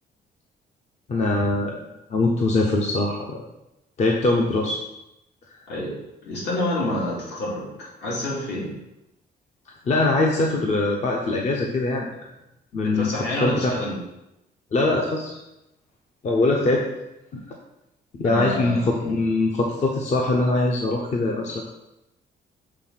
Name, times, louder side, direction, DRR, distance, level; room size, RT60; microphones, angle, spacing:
voice 1, 1.1-1.8 2.1-3.4 4.0-4.8 5.5-5.6 9.8-12.1 12.7-13.1 13.4-13.7 14.7-15.3 16.2-16.8 17.3-17.4 18.2-21.6, left 2 dB, 40° left, 0 dB, 0.7 m, -22 dB
voice 2, 6.2-8.7 12.8-14.0 18.2-19.1, left 1 dB, 70° left, -5 dB, 2.7 m, -28 dB
6.7 x 3.6 x 5.8 m, 0.90 s
cardioid pair, 175°, 18 cm